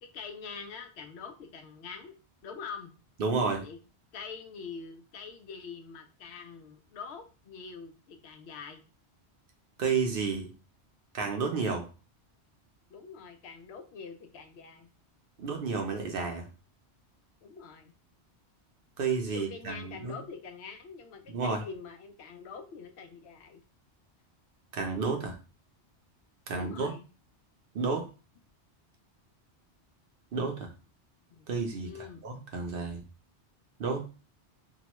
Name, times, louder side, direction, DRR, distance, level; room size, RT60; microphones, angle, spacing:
voice 1, 0.0-2.1 2.4-2.9 3.6-3.8 4.1-8.8 12.9-14.9 17.4-17.9 19.2-23.6 26.5-27.1 31.3-31.5 31.8-32.3, left 5 dB, 70° left, 6 dB, 0.8 m, -44 dB
voice 2, 3.2-3.6 9.8-10.5 11.1-11.9 15.4-16.5 19.0-20.1 21.3-21.6 24.7-25.4 26.5-26.9 27.7-28.1 30.3-30.7 31.5-33.0 33.8-34.1, right 4 dB, 60° right, 3 dB, 0.7 m, -31 dB
2.8 x 2.2 x 2.9 m, 0.34 s
omnidirectional pair, 1.2 m